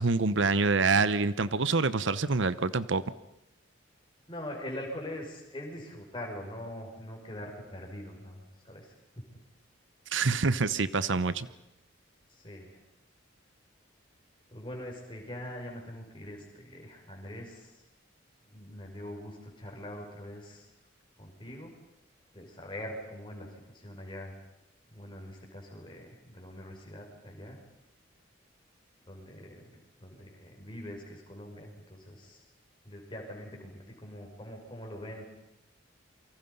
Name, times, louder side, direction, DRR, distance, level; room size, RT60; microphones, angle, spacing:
voice 1, 0.0-3.0 10.1-11.5, right 4 dB, 70° right, 15 dB, 0.9 m, -26 dB
voice 2, 4.3-9.3 12.3-12.8 14.5-17.8 18.5-20.7 21.2-21.7 22.3-24.3 24.9-27.6 29.0-32.4 32.8-35.2, left 1 dB, 25° left, 0 dB, 5.9 m, -43 dB
28.0 x 24.0 x 5.5 m, 0.87 s
head